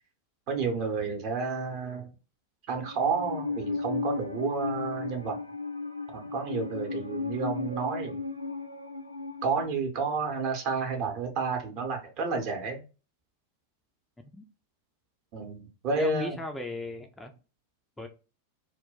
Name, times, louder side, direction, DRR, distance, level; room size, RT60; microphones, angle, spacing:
voice 1, 0.5-2.1 2.7-5.4 6.1-8.2 9.4-12.8 15.3-16.4, right 4 dB, 40° right, 0.8 m, -31 dB
Musical instrument, 2.8-9.7, left 4 dB, 90° left, 0.3 m, -35 dB
voice 2, 15.9-17.3 18.0-18.1, left 2 dB, 10° left, 0.3 m, -37 dB
2.2 x 2.1 x 3.8 m
figure-of-eight pair, 90°, 0 cm